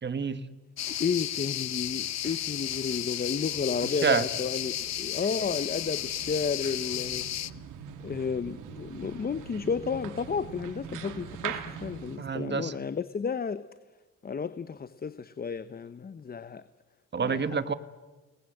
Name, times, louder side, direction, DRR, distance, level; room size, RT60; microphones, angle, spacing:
voice 1, 0.0-0.5 3.8-4.3 12.2-12.8 17.1-17.7, right 5 dB, 35° right, 12 dB, 1.6 m, -28 dB
sound 1, 0.8-7.5, left 12 dB, 60° left, 0.9 m, -33 dB
sound 2, 0.8-12.2, right 8 dB, 85° right, 2.3 m, -44 dB
voice 2, 0.9-7.2 8.0-13.6 14.2-16.6 17.2-17.4, left 6 dB, 30° left, 13 dB, 1.0 m, -32 dB
29.5 x 19.5 x 7.9 m, 1.2 s
cardioid pair, 90°, 30 cm